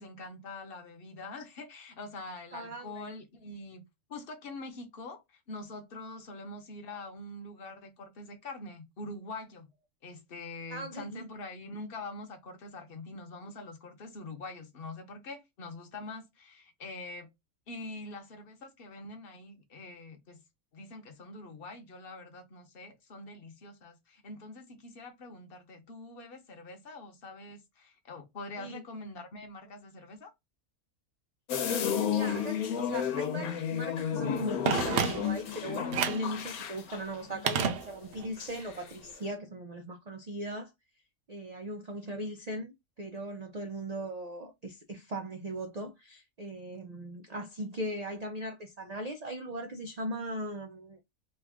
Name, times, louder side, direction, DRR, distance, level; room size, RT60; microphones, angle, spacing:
voice 1, 0.0-3.8 4.1-9.7 10.0-17.3 17.7-20.4 20.7-30.3, left 2 dB, 45° left, 1.0 m, -44 dB
voice 2, 2.5-3.0 10.7-11.3 28.6-28.8 31.7-40.7 41.3-51.0, right 1 dB, 85° right, 0.3 m, -39 dB
sound 1, 31.5-38.1 38.4-38.9, left 8 dB, 85° left, 1.2 m, -32 dB
Telephone, 34.7-35.5 35.9-36.3 37.5-38.3 38.6-38.7, right 7 dB, 60° right, 0.7 m, -30 dB
3.1 x 2.3 x 3.5 m
omnidirectional pair, 1.5 m